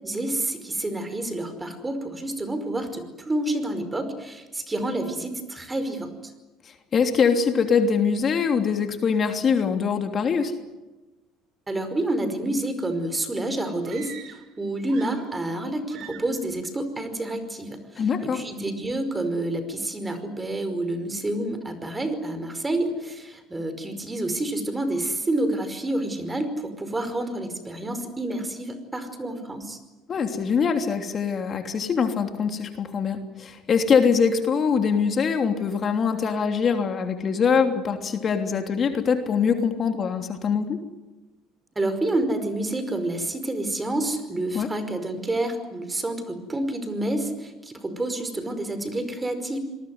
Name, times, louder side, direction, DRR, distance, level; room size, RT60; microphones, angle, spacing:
voice 1, 0.0-6.3 11.7-29.8 41.8-49.6, right 1 dB, 15° right, 10 dB, 5.2 m, -29 dB
voice 2, 6.6-10.5 18.0-18.4 30.1-40.8 44.5-44.7, left 6 dB, 40° left, 5 dB, 3.1 m, -23 dB
sound 1, 13.8-14.6 14.8-15.6 15.9-16.4, right 9 dB, 60° right, 4.3 m, -44 dB
26.0 x 20.0 x 9.6 m, 1.1 s
supercardioid pair, 80°, 0 cm